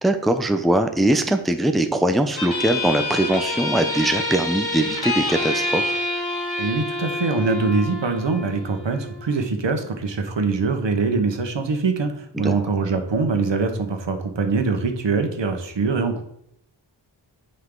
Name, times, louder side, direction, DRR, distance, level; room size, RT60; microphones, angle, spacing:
voice 1, 0.0-5.9 12.3-12.5, right 1 dB, ahead, 7 dB, 0.6 m, -21 dB
sound 1, 2.4-9.4, left 2 dB, 55° left, 2.5 m, -27 dB
voice 2, 6.6-16.2, right 4 dB, 70° right, 6 dB, 1.3 m, -23 dB
8.9 x 5.6 x 3.9 m, 0.73 s
wide cardioid pair, 100°, 45 cm